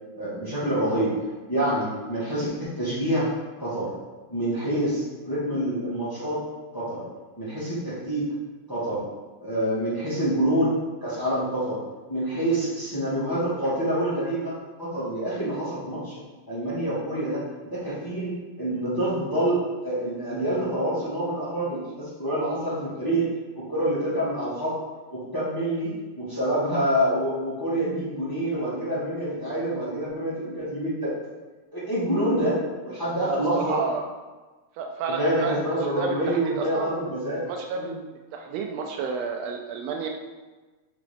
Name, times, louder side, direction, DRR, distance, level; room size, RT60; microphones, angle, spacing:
voice 1, 0.2-1.1 1.5-3.3 3.6-3.9 4.3-6.4 6.7-7.0 7.4-8.3 8.7-9.0 9.4-10.7 11.0-11.8 12.1-14.5 14.8-16.2 16.5-23.2 23.5-24.7 25.1-31.1 31.7-33.8 35.1-37.4 37.7-37.9, right 1 dB, 30° left, -10 dB, 0.4 m, -27 dB
voice 2, 33.3-34.0 34.8-36.9 37.4-37.9 38.3-40.1, right 5 dB, 80° right, 2 dB, 1.5 m, -31 dB
4.9 x 3.8 x 5.0 m, 1.2 s
omnidirectional pair, 3.4 m